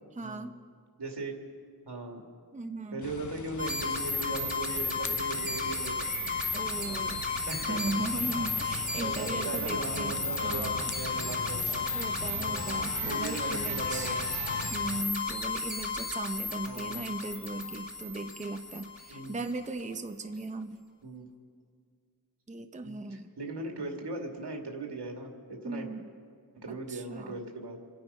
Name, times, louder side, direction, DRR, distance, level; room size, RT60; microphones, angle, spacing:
voice 1, 0.1-0.6 2.5-3.0 6.5-7.2 7.7-10.9 11.9-14.2 14.7-20.8 22.5-23.3 25.6-26.1 26.7-27.4, right 2 dB, 20° right, 6 dB, 0.7 m, -37 dB
voice 2, 1.0-1.3 1.9-2.2 2.9-6.0 6.8-7.2 7.5-7.8 9.0-11.9 12.3-12.7 13.1-14.2 16.6-17.1 19.1-19.5 21.0-21.3 22.8-25.9 26.6-27.8, right 2 dB, 80° right, 2 dB, 2.2 m, -38 dB
sound 1, 3.0-15.0, left 6 dB, 45° left, 0.7 m, -43 dB
sound 2, 3.6-19.4, left 3 dB, 20° left, 2.5 m, -33 dB
sound 3, 7.9-14.7, left 2 dB, 75° left, 2.0 m, -43 dB
26.5 x 9.1 x 5.5 m, 2.1 s
wide cardioid pair, 85°, 40 cm